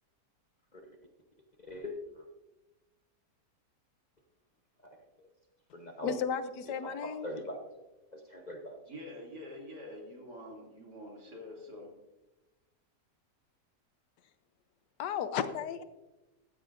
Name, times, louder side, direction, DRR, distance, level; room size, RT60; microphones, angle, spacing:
voice 1, 1.6-2.3 4.8-5.0 5.7-6.1 6.8-7.6 8.1-8.8, left 1 dB, 30° left, 2 dB, 0.9 m, -42 dB
voice 2, 6.0-7.3 15.0-15.8, left 7 dB, 80° left, 12 dB, 1.4 m, -34 dB
voice 3, 8.9-11.9, left 1 dB, 70° right, -1 dB, 3.3 m, -46 dB
15.0 x 13.0 x 2.6 m, 1.0 s
omnidirectional pair, 1.8 m